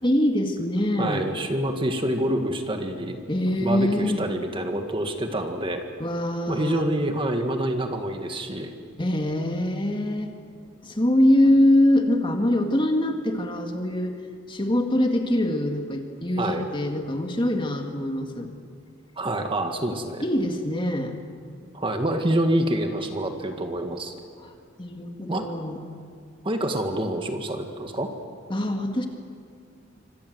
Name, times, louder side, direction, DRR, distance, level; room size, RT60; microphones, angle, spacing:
voice 1, 0.0-1.3 3.3-4.2 6.0-6.8 9.0-10.3 10.8-14.2 14.5-18.5 20.2-21.2 24.4-24.5 24.8-25.8 28.5-29.1, left 1 dB, 25° left, 4 dB, 2.0 m, -23 dB
voice 2, 1.0-3.2 3.6-5.8 6.5-8.7 16.4-16.6 19.2-20.3 21.7-24.1 25.3-25.5 26.4-28.1, right 1 dB, 25° right, 5 dB, 1.9 m, -27 dB
27.5 x 25.5 x 8.0 m, 2.2 s
head